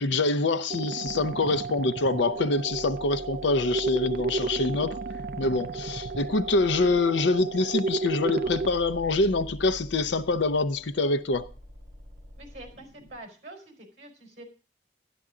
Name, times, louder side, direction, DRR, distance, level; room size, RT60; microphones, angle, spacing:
voice 1, 0.0-5.0 5.4-11.5, left 2 dB, 80° left, 0.7 m, -25 dB
sound 1, 0.7-8.7, right 4 dB, 55° right, 0.5 m, -33 dB
sound 2, 1.0-13.2, left 1 dB, 15° right, 7.4 m, -46 dB
voice 2, 12.4-14.4, right 1 dB, 40° right, 4.7 m, -46 dB
12.0 x 11.5 x 3.7 m
head